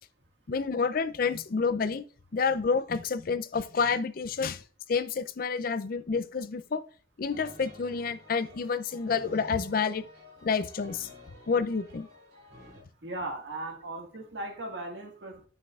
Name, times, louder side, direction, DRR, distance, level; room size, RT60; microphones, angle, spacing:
voice 1, 0.5-2.1 2.3-4.6 4.9-6.8 7.2-10.1 10.4-11.1 11.5-12.1, left 5 dB, 50° left, 13 dB, 0.4 m, -29 dB
sound 1, 7.2-12.8, left 1 dB, 50° right, 3.1 m, -51 dB
voice 2, 13.0-15.5, right 2 dB, 75° right, 2 dB, 1.8 m, -37 dB
9.6 x 7.6 x 2.4 m, 0.40 s
head